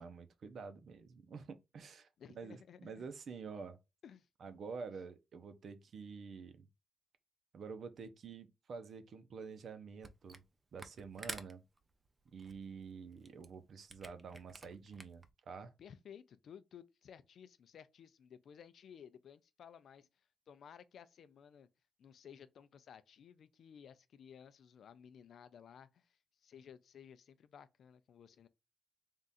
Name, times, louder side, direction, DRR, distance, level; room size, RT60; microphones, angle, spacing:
voice 1, 0.0-2.1 2.3-3.8 4.4-6.7 7.5-10.4 10.7-11.6 12.3-15.7, right 5 dB, 60° right, 0.7 m, -48 dB
voice 2, 2.2-3.1 4.0-4.3 15.8-20.1 20.5-21.7 22.0-28.5, left 8 dB, 70° left, 0.4 m, -56 dB
Camera, 10.0-10.5 10.7-15.3, right 2 dB, 20° right, 0.5 m, -50 dB
3.6 x 2.5 x 4.1 m
cardioid pair, 125°, 0 cm